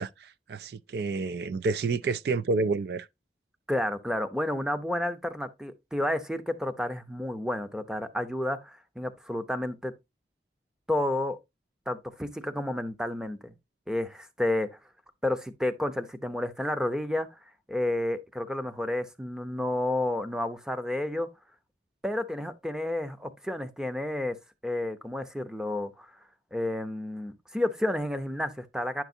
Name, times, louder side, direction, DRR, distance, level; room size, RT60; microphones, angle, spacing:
voice 1, 0.0-3.1, right 4 dB, 65° right, 0.3 m, -29 dB
voice 2, 3.7-9.9 10.9-11.4 11.9-13.5 13.9-14.7 15.2-17.3 17.7-21.3 22.0-24.3 24.6-26.1 26.5-29.0, left 1 dB, 5° right, 0.6 m, -31 dB
9.9 x 5.9 x 2.6 m
head